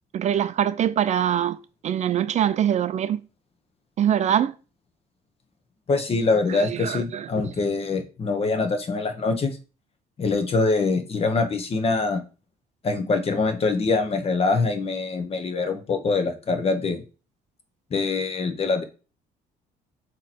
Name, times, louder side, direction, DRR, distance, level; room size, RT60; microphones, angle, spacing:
voice 1, 0.1-1.6 1.8-3.2 4.0-4.5 6.5-7.3, right 10 dB, 45° right, 0.4 m, -23 dB
voice 2, 5.9-9.6 10.2-12.2 12.8-17.0 17.9-18.8, left 3 dB, 35° left, 1.2 m, -24 dB
7.3 x 3.1 x 4.4 m
cardioid pair, 110°, 17 cm